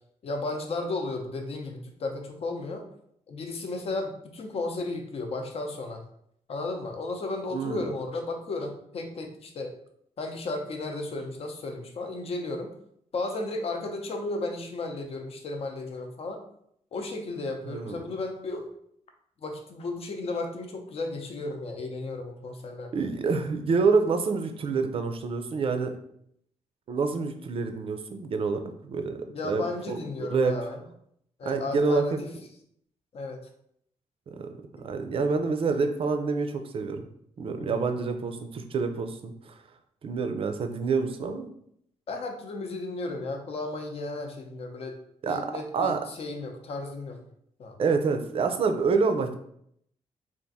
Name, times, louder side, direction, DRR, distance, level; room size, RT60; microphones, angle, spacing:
voice 1, 0.2-2.8 3.3-6.0 6.5-9.7 10.2-12.7 13.1-16.4 16.9-18.7 19.4-22.9 29.3-30.8 31.4-32.3 33.1-33.4 37.6-37.9 42.1-45.0 45.3-47.2 47.6-47.8, left 2 dB, 50° left, 3 dB, 0.7 m, -34 dB
voice 2, 7.5-7.8 17.6-18.0 22.9-25.9 26.9-29.2 29.4-30.0 30.3-30.5 31.4-32.0 34.3-34.5 34.8-37.1 37.4-39.3 40.0-41.5 45.2-45.4 45.7-46.0 47.8-49.4, right 4 dB, 50° right, 6 dB, 0.5 m, -27 dB
3.5 x 2.5 x 4.0 m, 0.70 s
cardioid pair, 130°, 13 cm